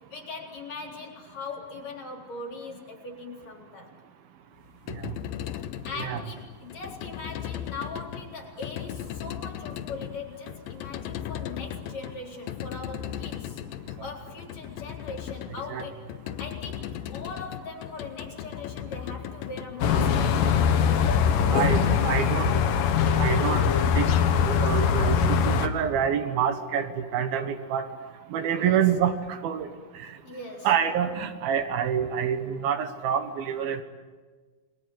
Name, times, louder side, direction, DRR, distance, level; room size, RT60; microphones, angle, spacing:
voice 1, 0.1-3.9 5.8-13.6 14.0-16.0 16.4-21.8 28.4-28.8 30.2-30.7, left 3 dB, 50° left, 0 dB, 5.1 m, -40 dB
sound 1, 4.6-20.8, left 10 dB, 85° left, 2.8 m, -37 dB
sound 2, 19.8-25.7, left 7 dB, 70° left, 2.9 m, -22 dB
voice 2, 21.5-22.5 23.2-23.7 24.0-24.1 24.5-26.9 27.1-27.9 28.3-29.7 30.6-33.8, right 8 dB, 85° right, 7 dB, 3.2 m, -26 dB
29.5 x 22.5 x 8.0 m, 1.4 s
omnidirectional pair, 4.2 m